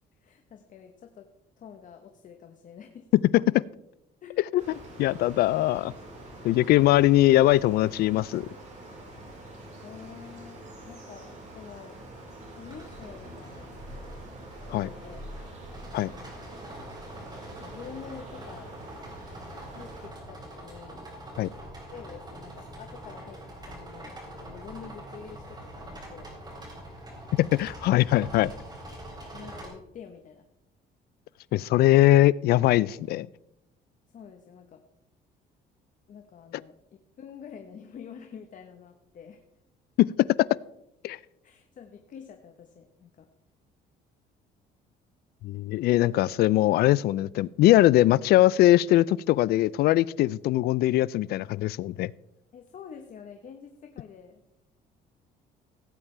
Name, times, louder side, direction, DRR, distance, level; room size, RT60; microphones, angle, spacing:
voice 1, 0.2-1.3 1.6-3.1 4.2-4.4 9.8-12.0 12.5-13.7 14.6-15.2 16.1-16.4 17.5-18.7 19.7-21.1 21.9-26.3 29.3-30.5 34.1-34.8 36.1-39.5 41.4-43.3 52.5-54.4, left 7 dB, 50° left, 1.1 m, -47 dB
sound 1, 4.6-20.1, right 1 dB, 45° right, 4.4 m, -46 dB
voice 2, 5.0-5.9 6.4-8.5 14.7-14.9 15.9-16.1 21.4-21.5 27.3-28.5 31.5-33.3 40.0-40.1 41.0-41.2 45.4-52.1, left 15 dB, 70° left, 0.4 m, -21 dB
sound 2, 12.7-29.7, right 1 dB, 25° right, 4.0 m, -44 dB
17.0 x 8.9 x 3.3 m
cardioid pair, 110°, 17 cm